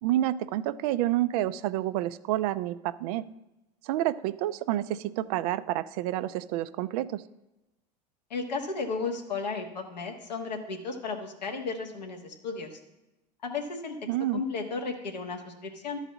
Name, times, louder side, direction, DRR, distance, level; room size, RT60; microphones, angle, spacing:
voice 1, 0.0-3.2 3.8-7.2 14.1-14.4, right 14 dB, 65° right, 14 dB, 0.5 m, -29 dB
voice 2, 8.3-12.8 13.4-14.0 14.3-16.0, left 4 dB, 90° left, 2 dB, 1.4 m, -34 dB
12.0 x 4.1 x 7.2 m, 0.99 s
hypercardioid pair, 80°, 21 cm